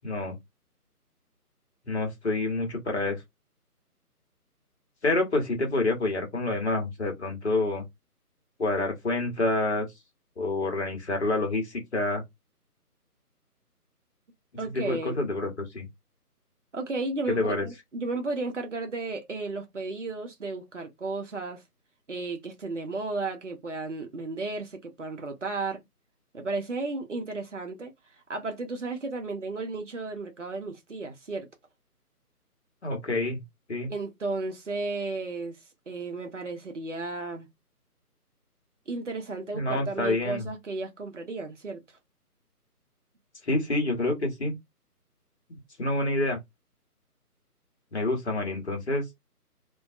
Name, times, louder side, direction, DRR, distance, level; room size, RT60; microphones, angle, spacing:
voice 1, 0.0-0.4 1.9-3.2 5.0-7.8 8.6-9.9 10.4-12.2 14.7-15.9 17.3-17.7 32.8-33.4 33.7-33.9 39.5-40.5 43.4-44.5 45.8-46.4 47.9-49.2, left 2 dB, 45° left, 0.9 m, -27 dB
voice 2, 14.6-15.3 16.7-21.6 22.1-25.8 26.3-27.9 28.3-31.5 33.9-35.6 35.9-37.5 38.9-41.8, right 3 dB, 50° right, 0.7 m, -34 dB
2.5 x 2.2 x 2.4 m
figure-of-eight pair, 150°, 47 cm